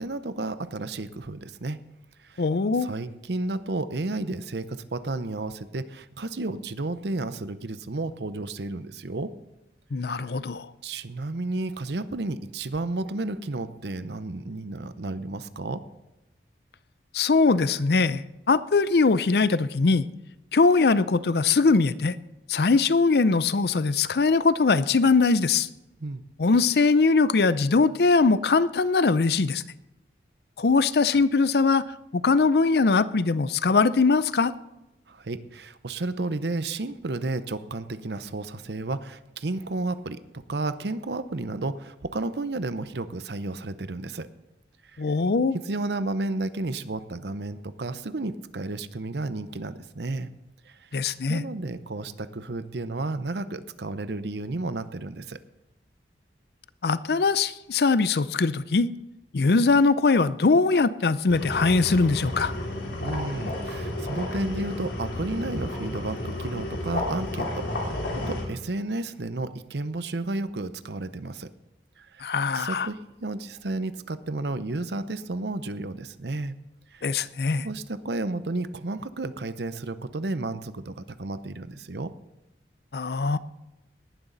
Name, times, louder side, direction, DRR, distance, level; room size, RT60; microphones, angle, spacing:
voice 1, 0.0-1.8 2.2-2.4 2.8-9.3 10.1-10.2 10.8-15.8 26.0-26.2 35.1-44.3 44.9-45.0 45.6-50.3 50.7-50.9 51.3-55.4 63.0-71.5 72.0-72.2 72.5-76.5 76.9-77.1 77.6-82.1, right 2 dB, 65° right, 13 dB, 0.8 m, -32 dB
voice 2, 2.4-2.9 9.9-10.7 17.1-20.0 20.5-22.2 22.5-25.7 26.4-29.6 30.6-31.8 32.1-34.5 45.0-45.6 50.9-51.4 56.8-58.9 59.3-62.5 72.2-72.9 77.0-77.7 82.9-83.4, left 4 dB, 60° left, 16 dB, 0.5 m, -21 dB
sound 1, 61.3-68.5, left 1 dB, 90° left, 3.5 m, -32 dB
18.5 x 11.5 x 4.0 m, 0.97 s
head